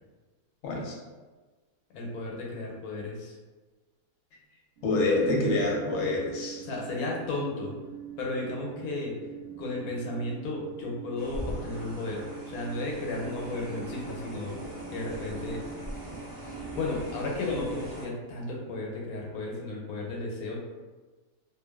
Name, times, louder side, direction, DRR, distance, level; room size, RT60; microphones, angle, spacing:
voice 1, 0.6-1.0 4.8-6.6, left 2 dB, 65° left, -2 dB, 0.8 m, -26 dB
voice 2, 1.9-3.4 6.6-7.7 8.2-9.2 9.6-14.5 14.9-15.6 16.7-20.6, left 2 dB, 90° left, -2 dB, 1.1 m, -34 dB
sound 1, 4.8-17.9, right 8 dB, 45° right, 0.8 m, -44 dB
sound 2, 11.2-18.0, equal, 25° right, 0.4 m, -41 dB
2.5 x 2.3 x 2.2 m, 1.3 s
omnidirectional pair, 1.5 m